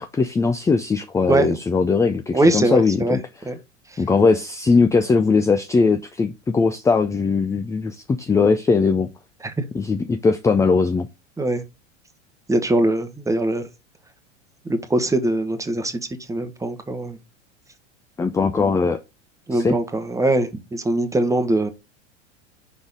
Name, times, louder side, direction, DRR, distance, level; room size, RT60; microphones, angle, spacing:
voice 1, 0.0-3.2 4.0-9.1 9.7-11.1 18.2-19.0 19.5-19.8, left 4 dB, 10° left, 0.4 m, -20 dB
voice 2, 2.3-3.2 3.4-3.5 3.9-4.0 9.4-9.5 11.4-11.6 12.5-13.7 14.7-16.0 16.3-17.2 19.5-21.7, right 2 dB, 10° right, 1.1 m, -21 dB
5.5 x 3.9 x 4.9 m
hypercardioid pair, 95°, 36 cm